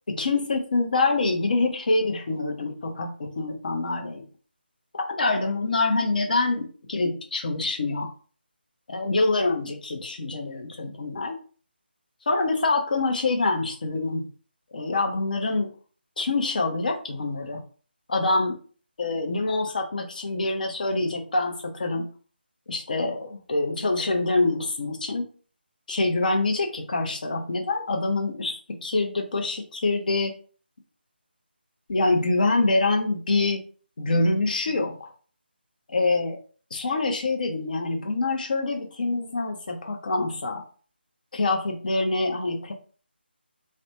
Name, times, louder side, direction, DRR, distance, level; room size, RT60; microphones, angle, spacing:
voice 1, 0.1-4.2 4.9-8.1 8.9-11.4 12.3-14.2 14.7-15.7 16.2-17.6 18.1-18.6 19.0-22.1 22.7-25.3 25.9-30.3 31.9-33.6 34.0-35.1 35.9-36.4 36.7-40.6 41.3-42.7, left 3 dB, 50° left, 4 dB, 0.7 m, -25 dB
2.5 x 2.1 x 2.9 m, 0.40 s
figure-of-eight pair, 160°, 6 cm